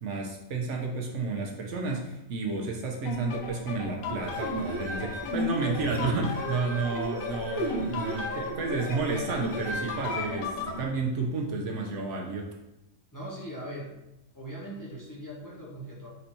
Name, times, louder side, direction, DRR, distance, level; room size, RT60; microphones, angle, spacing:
voice 1, 0.0-12.5, right 3 dB, 70° right, 0 dB, 0.9 m, -31 dB
sound 1, 3.0-4.3 5.1-6.2 7.7-7.9 8.9-9.3 10.1-10.4, left 3 dB, 55° left, 1.0 m, -40 dB
sound 2, 3.1-10.8, left 6 dB, 85° left, 1.0 m, -38 dB
sound 3, 4.1-10.9, right 1 dB, 30° right, 0.5 m, -35 dB
voice 2, 13.1-13.9 14.3-16.1, right 1 dB, 15° left, -6 dB, 0.9 m, -40 dB
4.4 x 2.7 x 4.2 m, 0.93 s
omnidirectional pair, 1.4 m